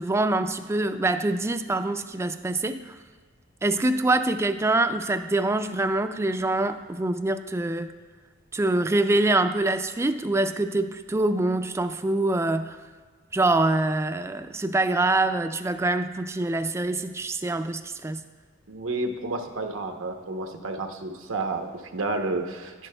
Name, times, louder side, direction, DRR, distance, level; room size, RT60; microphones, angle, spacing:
voice 1, 0.0-2.8 3.6-7.9 8.5-12.8 13.3-18.2, right 2 dB, 15° right, 9 dB, 0.3 m, -25 dB
voice 2, 18.7-22.7, right 2 dB, 90° right, 4 dB, 0.8 m, -30 dB
10.5 x 10.0 x 2.2 m, 1.5 s
head